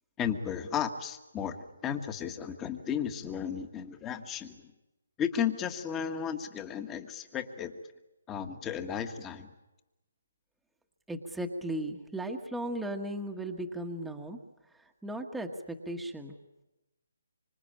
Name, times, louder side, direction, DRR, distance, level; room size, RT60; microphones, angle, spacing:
voice 1, 0.2-4.6 5.2-7.7 8.3-9.5, left 8 dB, 15° left, 7 dB, 1.6 m, -34 dB
voice 2, 11.1-14.4 14.7-16.4, right 1 dB, 5° right, 2 dB, 1.5 m, -36 dB
25.5 x 25.0 x 8.9 m, 1.0 s
hypercardioid pair, 155°, 0 cm